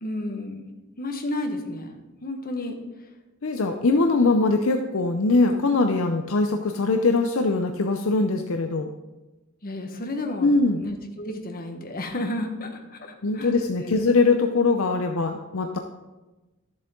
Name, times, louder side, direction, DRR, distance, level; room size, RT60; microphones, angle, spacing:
voice 1, 0.0-0.7 1.0-1.9 2.2-2.8 9.6-13.5 13.8-14.0, left 1 dB, 45° left, 3 dB, 1.4 m, -32 dB
voice 2, 3.4-8.9 10.4-10.8 13.2-15.8, left 3 dB, 70° left, 4 dB, 0.6 m, -22 dB
13.0 x 7.4 x 3.8 m, 1.1 s
head